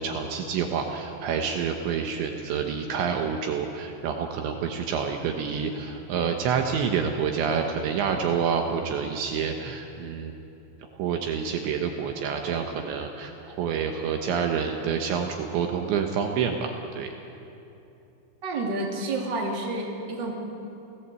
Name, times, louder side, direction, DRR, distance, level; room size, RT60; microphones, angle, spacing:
voice 1, 0.0-10.3 11.0-17.1, right 6 dB, 70° right, 4 dB, 3.2 m, -28 dB
voice 2, 18.4-20.3, right 2 dB, 25° right, -1 dB, 2.9 m, -29 dB
29.0 x 17.0 x 8.3 m, 2.8 s
omnidirectional pair, 5.7 m